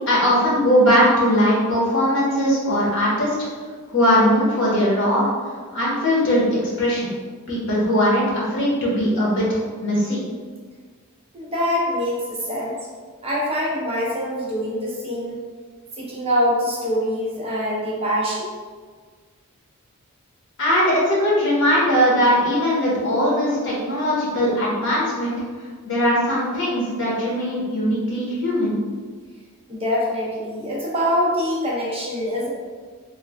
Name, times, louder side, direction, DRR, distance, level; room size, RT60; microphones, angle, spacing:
voice 1, 0.1-3.4 3.9-5.3 5.7-7.1 7.5-10.2 20.6-25.3 25.8-28.8, equal, 55° left, -6 dB, 1.1 m, -20 dB
voice 2, 11.3-12.8 13.2-15.4 16.0-18.5 29.7-32.5, equal, 25° right, -5 dB, 0.6 m, -24 dB
3.2 x 2.2 x 3.4 m, 1.5 s
head